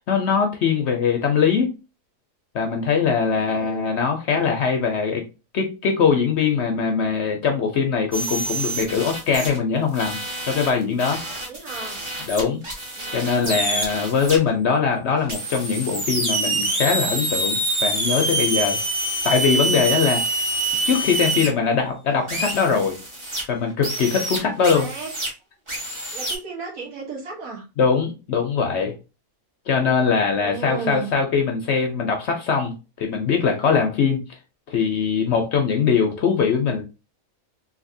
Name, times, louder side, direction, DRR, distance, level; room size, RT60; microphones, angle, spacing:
voice 1, 0.0-1.7 2.5-5.2 5.5-10.2 10.5-11.2 12.3-12.6 13.1-18.8 19.2-20.2 20.8-23.0 23.5-24.9 27.8-28.9 29.7-34.2 34.7-36.8, left 6 dB, 65° left, 3 dB, 0.7 m, -21 dB
voice 2, 3.2-4.0 11.5-12.0 12.9-13.9 24.7-25.1 26.1-27.6 30.2-31.1, right 4 dB, 70° right, -2 dB, 1.6 m, -35 dB
sound 1, 8.1-9.6 9.9-14.4 15.3-21.5 22.3-23.4 23.8-25.3 25.7-26.4, right 2 dB, 25° right, 0.9 m, -26 dB
3.3 x 2.6 x 2.6 m, 0.29 s
omnidirectional pair, 1.5 m